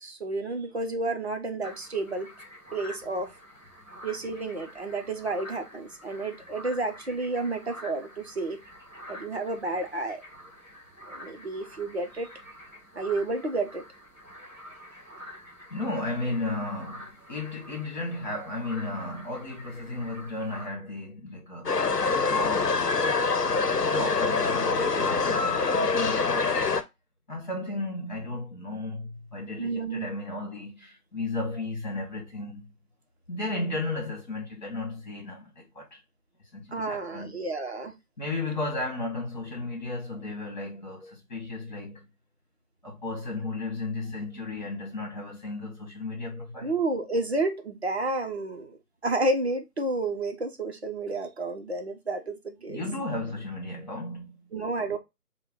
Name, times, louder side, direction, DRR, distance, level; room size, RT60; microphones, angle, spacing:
voice 1, 0.0-2.3 2.7-3.3 4.0-8.6 9.1-10.2 11.1-12.3 12.9-13.8 29.6-30.1 36.7-37.9 46.6-48.8 49.0-52.8 54.5-55.0, right 2 dB, 45° right, 0.7 m, -31 dB
sound 1, 1.6-20.7, left 1 dB, 5° right, 1.6 m, -47 dB
voice 2, 15.7-21.8 22.2-22.9 23.7-26.6 27.3-32.7 33.3-36.0 36.5-37.4 38.2-42.1 42.8-46.7 52.7-54.5, left 2 dB, 30° left, 1.6 m, -34 dB
sound 2, 21.7-26.8, left 4 dB, 80° left, 0.8 m, -25 dB
5.7 x 2.3 x 3.6 m
figure-of-eight pair, 160°, 47 cm